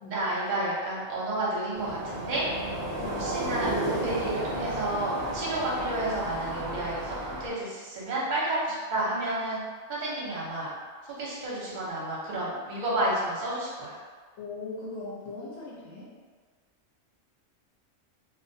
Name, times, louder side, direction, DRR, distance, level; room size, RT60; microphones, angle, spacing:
voice 1, 0.1-2.5 3.2-7.1 7.4-9.6 9.9-10.7 11.1-14.0, right 1 dB, 45° right, -6 dB, 0.6 m, -31 dB
sound 1, 1.7-7.5, right 1 dB, 90° right, 0.3 m, -33 dB
voice 2, 3.0-3.4 14.4-16.1, left 3 dB, 70° left, -6 dB, 0.9 m, -39 dB
2.3 x 2.1 x 2.6 m, 1.5 s
omnidirectional pair, 1.3 m